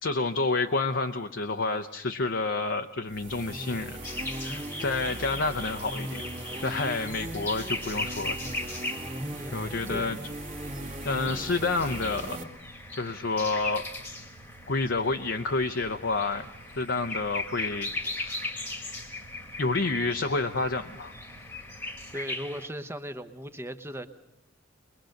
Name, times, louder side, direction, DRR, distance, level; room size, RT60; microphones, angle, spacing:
voice 1, 0.0-4.0 4.4-6.2 6.6-8.4 9.5-10.2 11.0-12.5 12.9-13.9 14.7-17.9 18.2-18.5 19.6-21.1, left 3 dB, 60° left, 6 dB, 0.8 m, -29 dB
sound 1, 3.1-12.4, right 1 dB, 35° right, 1.9 m, -38 dB
sound 2, 4.0-22.7, left 2 dB, 10° left, 1.5 m, -39 dB
sound 3, 6.4-22.2, right 2 dB, 65° right, 1.0 m, -52 dB
voice 2, 9.3-10.3 22.1-24.1, equal, 10° right, 9 dB, 0.9 m, -38 dB
22.5 x 22.0 x 6.5 m, 0.93 s
head